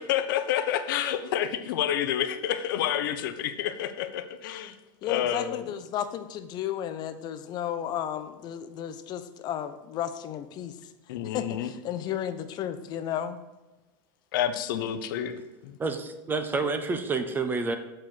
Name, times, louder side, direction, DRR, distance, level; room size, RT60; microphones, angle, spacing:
voice 1, 0.0-4.7 5.0-5.7 11.1-11.7 14.3-15.8, left 10 dB, 80° left, 10 dB, 0.7 m, -29 dB
voice 2, 5.0-10.7 11.3-13.4, left 10 dB, 40° left, 11 dB, 0.7 m, -33 dB
voice 3, 15.8-17.8, right 4 dB, 20° right, 8 dB, 0.7 m, -28 dB
7.9 x 4.4 x 6.4 m, 1.1 s
supercardioid pair, 140°, 11 cm